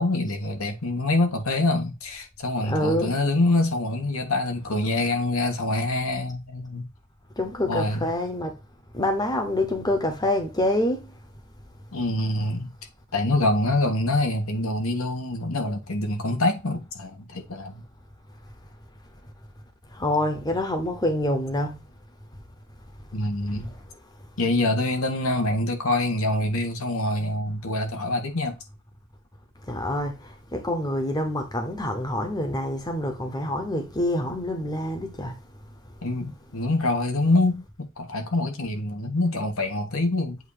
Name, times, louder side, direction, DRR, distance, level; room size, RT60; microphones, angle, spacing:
voice 1, 0.0-6.9 7.7-8.1 11.9-12.7 13.1-17.8 23.1-23.7 24.4-28.6 36.0-37.6 38.0-40.4, left 2 dB, 75° left, 1.4 m, -25 dB
voice 2, 2.6-3.2 7.4-8.5 8.9-11.0 19.9-21.8 29.7-30.1 30.5-35.3, left 1 dB, 20° left, 0.9 m, -26 dB
8.0 x 2.7 x 4.9 m
head